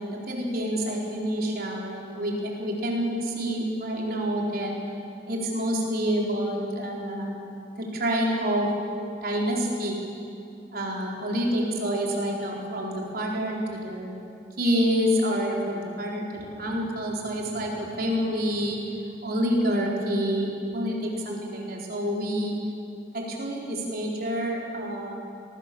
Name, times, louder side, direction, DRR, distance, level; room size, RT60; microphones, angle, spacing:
voice 1, 0.0-4.7 5.3-7.3 7.8-8.7 9.2-10.0 10.7-14.2 14.6-18.8 19.2-22.5 23.1-25.1, equal, 55° right, -2 dB, 4.5 m, -28 dB
26.0 x 19.5 x 7.2 m, 2.6 s
head